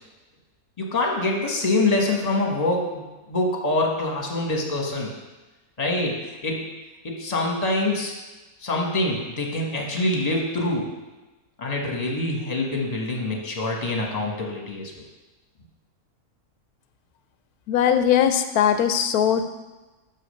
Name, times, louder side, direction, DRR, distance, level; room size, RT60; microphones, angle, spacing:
voice 1, 0.8-5.1 5.8-6.7 7.0-8.1 8.6-10.9 11.6-14.9, left 2 dB, 30° left, 0 dB, 1.3 m, -25 dB
voice 2, 17.7-19.5, left 9 dB, 90° left, 8 dB, 1.1 m, -20 dB
6.5 x 5.1 x 6.4 m, 1.1 s
omnidirectional pair, 1.5 m